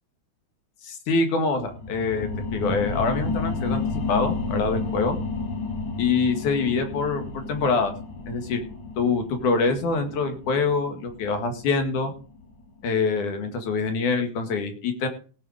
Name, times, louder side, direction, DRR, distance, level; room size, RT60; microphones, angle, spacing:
voice 1, 0.8-5.2 6.0-7.9 8.3-8.6 9.0-12.1 12.8-15.1, left 4 dB, 85° left, 6 dB, 3.5 m, -25 dB
sound 1, 1.5-12.7 13.1-13.2, left 3 dB, 65° left, 3.2 m, -32 dB
17.5 x 7.0 x 5.0 m, 0.38 s
omnidirectional pair, 3.4 m